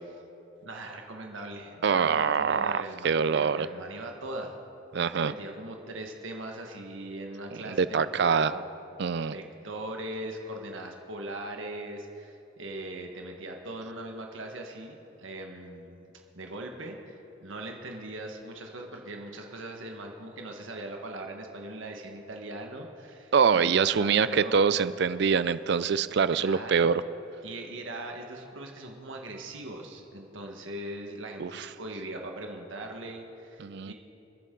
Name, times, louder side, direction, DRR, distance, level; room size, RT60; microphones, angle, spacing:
voice 1, 0.6-4.6 5.1-8.6 9.3-24.8 26.3-26.9 27.4-33.9, right 1 dB, 80° right, 2 dB, 1.5 m, -40 dB
voice 2, 1.8-3.7 4.9-5.3 7.7-8.5 9.0-9.3 23.3-27.0 31.4-31.7 33.6-33.9, right 6 dB, 55° right, 15 dB, 0.4 m, -24 dB
28.5 x 9.9 x 3.8 m, 3.0 s
head